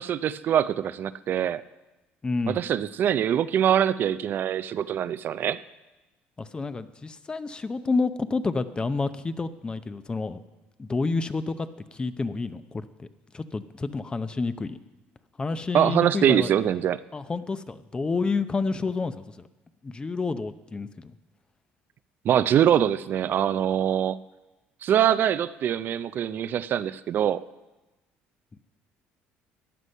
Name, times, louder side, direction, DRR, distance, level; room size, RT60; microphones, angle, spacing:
voice 1, 0.0-1.6 2.5-5.6 15.7-17.0 22.2-24.2 24.8-27.4, right 10 dB, 50° right, 14 dB, 0.4 m, -23 dB
voice 2, 2.2-2.6 6.4-10.4 10.8-13.1 13.3-14.8 15.4-16.5 17.1-19.5 19.8-21.1, left 3 dB, 20° left, 12 dB, 0.7 m, -29 dB
14.5 x 9.8 x 5.5 m, 1.1 s
supercardioid pair, 95°, 4 cm